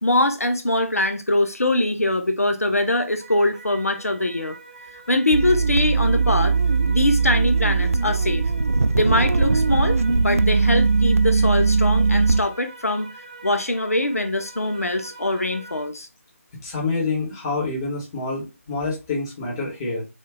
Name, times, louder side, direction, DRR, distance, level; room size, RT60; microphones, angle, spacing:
voice 1, 0.0-4.6 5.1-6.5 6.9-8.4 8.9-13.1 13.4-16.1, left 1 dB, 75° left, 0.6 m, -23 dB
sound 1, 3.2-15.9, right 3 dB, 35° right, 0.8 m, -44 dB
sound 2, 5.3-12.4, right 4 dB, 70° right, 0.4 m, -19 dB
voice 2, 16.6-20.0, left 3 dB, 15° left, 1.1 m, -27 dB
3.6 x 2.4 x 3.7 m
figure-of-eight pair, 155°, 8 cm